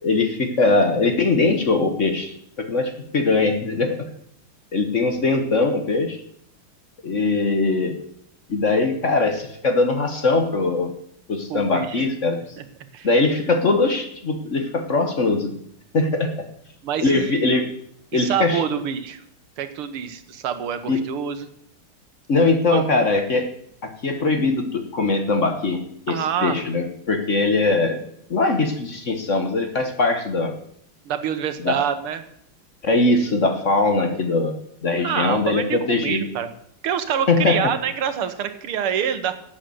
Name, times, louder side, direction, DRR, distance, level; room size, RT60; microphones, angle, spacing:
voice 1, 0.0-4.1 4.7-6.2 7.0-8.0 8.5-10.9 11.3-12.4 13.0-15.6 15.9-16.5 17.0-17.7 18.1-18.6 20.9-21.1 22.3-23.5 23.8-30.6 31.6-31.8 32.8-36.3 37.3-37.7, left 3 dB, 40° left, 6 dB, 1.3 m, -21 dB
voice 2, 11.5-12.0 12.6-12.7 12.9-13.1 16.8-17.4 18.1-19.2 19.6-21.5 22.7-22.8 26.1-26.6 31.1-32.2 33.1-33.2 35.0-36.5 36.8-39.3, right 8 dB, 90° right, 10 dB, 2.1 m, -26 dB
12.0 x 8.4 x 7.8 m, 0.70 s
omnidirectional pair, 2.3 m